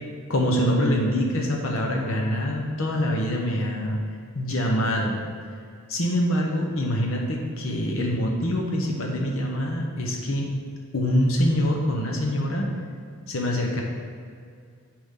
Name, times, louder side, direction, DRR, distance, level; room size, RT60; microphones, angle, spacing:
voice 1, 0.3-4.0 4.3-5.2 5.9-10.5 10.9-12.7 13.3-13.8, equal, 75° left, 0 dB, 1.1 m, -24 dB
9.1 x 4.9 x 3.9 m, 2.2 s
head